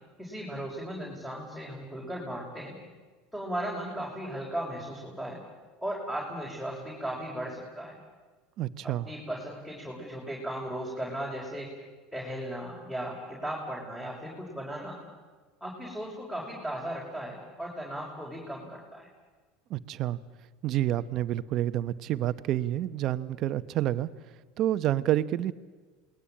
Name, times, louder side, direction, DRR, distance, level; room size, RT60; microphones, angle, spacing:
voice 1, 0.2-2.8 3.3-5.4 5.8-8.0 8.8-11.7 12.1-15.0 15.6-19.1, right 1 dB, 5° left, -2 dB, 5.1 m, -36 dB
voice 2, 8.6-9.1 19.7-20.2 20.6-25.5, right 13 dB, 50° right, 13 dB, 1.0 m, -29 dB
28.0 x 19.5 x 8.7 m, 1.4 s
supercardioid pair, 110°, 0 cm